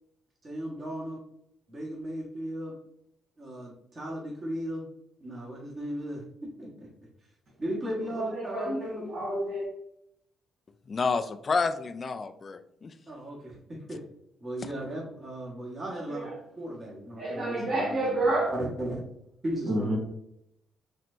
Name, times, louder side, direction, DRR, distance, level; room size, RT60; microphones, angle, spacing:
voice 1, 0.4-1.2 1.7-2.7 3.4-4.8 5.2-6.9 7.6-9.0 13.1-14.0 14.4-16.3 16.6-19.0 19.4-20.0, right 1 dB, 30° right, -5 dB, 1.4 m, -36 dB
voice 2, 8.1-9.7 16.1-16.3 17.2-18.5 19.7-20.0, right 1 dB, 65° right, -5 dB, 1.4 m, -29 dB
voice 3, 10.9-12.9, left 4 dB, 40° left, 10 dB, 0.4 m, -29 dB
4.3 x 3.2 x 2.6 m, 0.76 s
cardioid pair, 90°, 0 cm